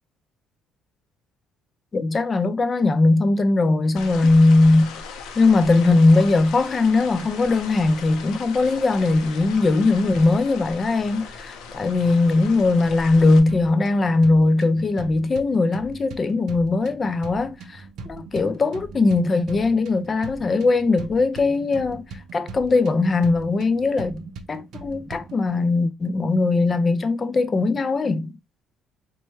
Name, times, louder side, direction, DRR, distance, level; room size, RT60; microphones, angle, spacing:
voice 1, 1.9-4.9 5.4-24.2 24.5-28.3, left 3 dB, 25° left, 0.4 m, -20 dB
sound 1, 4.0-13.4, left 5 dB, 80° left, 0.6 m, -38 dB
sound 2, 13.5-25.5, right 4 dB, 60° right, 0.5 m, -41 dB
4.2 x 2.2 x 3.0 m
cardioid pair, 155°, 0 cm